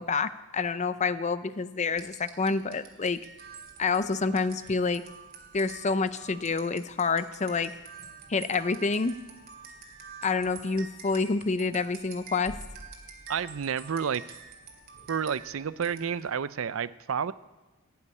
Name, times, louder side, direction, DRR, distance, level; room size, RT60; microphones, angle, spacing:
voice 1, 0.0-3.2 3.8-5.0 5.5-7.7 8.3-9.1 10.2-12.6, left 4 dB, 35° left, 14 dB, 0.6 m, -28 dB
sound 1, 1.9-16.4, right 4 dB, 45° right, 2.3 m, -47 dB
voice 2, 13.3-14.2 15.1-17.3, right 7 dB, 65° right, 17 dB, 0.5 m, -30 dB
16.5 x 7.1 x 9.8 m, 1.2 s
head